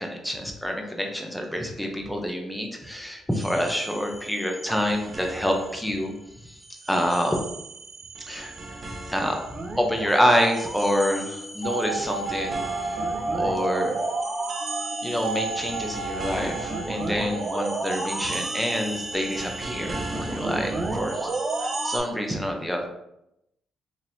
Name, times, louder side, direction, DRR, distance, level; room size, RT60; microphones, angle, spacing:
voice 1, 0.0-6.1 6.4-6.6 6.9-7.4 8.2-8.5 8.8-9.4 9.8-12.6 12.9-13.0 13.3-13.9 15.0-21.3 21.6-22.9, equal, 5° left, 2 dB, 0.7 m, -27 dB
sound 1, 3.3-6.0 6.4-22.0, right 2 dB, 35° right, 0.6 m, -33 dB
sound 2, 11.6-20.1 20.4-20.5 20.7-20.8, right 3 dB, 85° right, 0.4 m, -32 dB
4.2 x 2.9 x 2.7 m, 0.84 s
cardioid pair, 90°, 0 cm